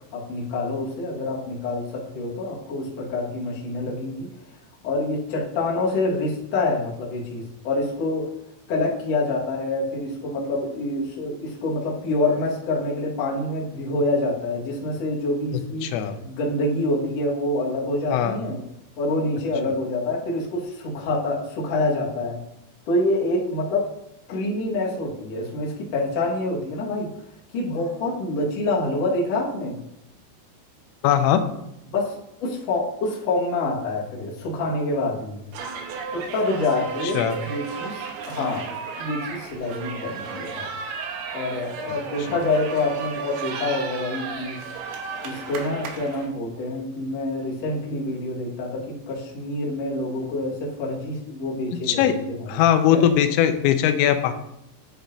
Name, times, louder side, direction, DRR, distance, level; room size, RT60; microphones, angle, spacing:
voice 1, 0.1-4.3 4.8-8.3 8.7-15.9 16.2-18.6 19.0-22.4 22.9-23.9 24.3-27.1 27.5-29.8 31.9-35.4 36.1-38.6 39.0-40.7 41.3-44.6 45.2-52.6 52.9-53.0, left 2 dB, 65° left, -4 dB, 1.6 m, -26 dB
voice 2, 15.8-16.1 18.1-18.4 31.0-31.4 37.0-37.4 51.9-52.1 52.5-54.3, left 10 dB, 85° left, 8 dB, 3.3 m, -20 dB
sound 1, 35.5-46.3, right 5 dB, 85° right, 3.7 m, -34 dB
10.0 x 8.1 x 2.7 m, 0.83 s
omnidirectional pair, 5.7 m